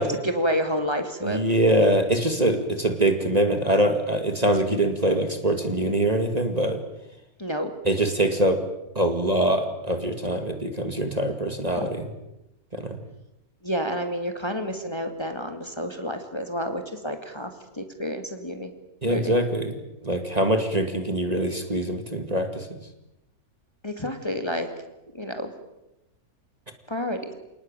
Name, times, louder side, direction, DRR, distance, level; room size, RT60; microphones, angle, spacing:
voice 1, 0.0-1.4 7.4-7.7 11.8-11.9 13.6-17.5 17.8-18.7 19.1-19.4 23.8-24.7 25.1-25.5 26.9-27.3, equal, 15° left, 6 dB, 2.3 m, -29 dB
voice 2, 1.2-6.8 7.8-8.6 9.0-12.1 12.7-13.0 19.0-19.7 20.0-22.8, right 1 dB, 25° right, 6 dB, 2.3 m, -23 dB
28.0 x 19.0 x 9.0 m, 0.93 s
omnidirectional pair, 1.6 m